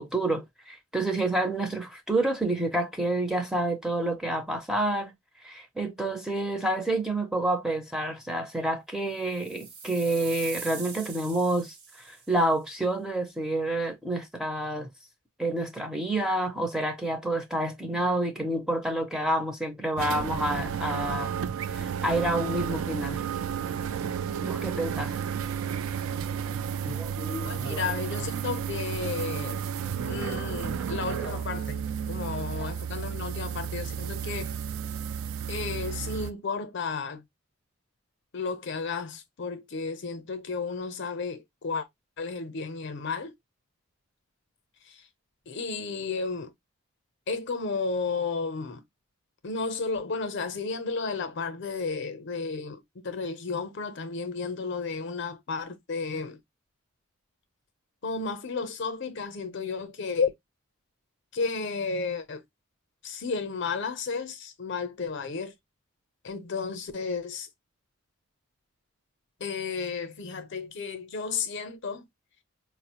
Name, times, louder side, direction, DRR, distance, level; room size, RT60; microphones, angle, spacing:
voice 1, 0.0-5.1 5.4-14.9 15.4-21.3 21.7-23.2 24.4-25.2 26.8-27.8 31.2-31.4 32.6-32.7, right 1 dB, ahead, 0.5 m, -29 dB
sound 1, 9.2-12.4, right 5 dB, 50° right, 1.0 m, -42 dB
sound 2, 20.0-36.3, right 8 dB, 70° right, 0.3 m, -32 dB
voice 2, 27.4-29.6 30.1-34.6 35.5-37.2 38.3-41.9 42.2-43.3 44.8-45.0 45.5-46.5 47.3-48.8 49.4-56.4 58.0-60.3 61.3-62.4 63.0-65.5 66.2-67.5 69.4-72.1, left 4 dB, 50° left, 0.5 m, -33 dB
4.6 x 2.0 x 2.8 m
head